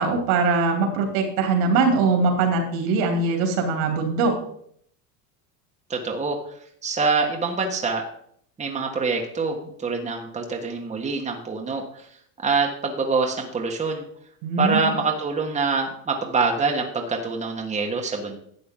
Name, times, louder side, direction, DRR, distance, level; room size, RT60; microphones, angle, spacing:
voice 1, 0.0-4.3 14.4-14.8, right 4 dB, 70° right, 3 dB, 3.0 m, -21 dB
voice 2, 5.9-6.4 6.8-8.0 8.6-12.0 12.4-14.0 14.6-18.4, right 4 dB, 15° right, 1 dB, 1.4 m, -25 dB
11.5 x 7.7 x 3.8 m, 0.66 s
supercardioid pair, 120°, 41 cm